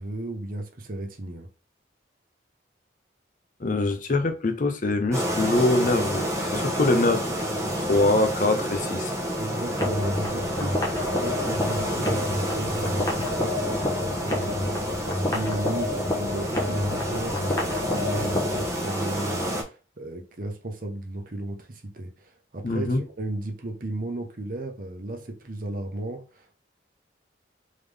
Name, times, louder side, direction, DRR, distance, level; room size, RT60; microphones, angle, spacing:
voice 1, 0.0-1.5 9.4-10.8 11.2-14.0 14.2-26.6, right 2 dB, 45° right, 0.9 m, -34 dB
voice 2, 3.6-7.4 7.8-9.1 22.6-23.0, left 2 dB, 45° left, 0.6 m, -24 dB
sound 1, 5.1-19.6, equal, 15° right, 1.0 m, -29 dB
sound 2, 9.7-18.7, left 1 dB, 20° left, 0.9 m, -29 dB
3.7 x 3.6 x 3.3 m
head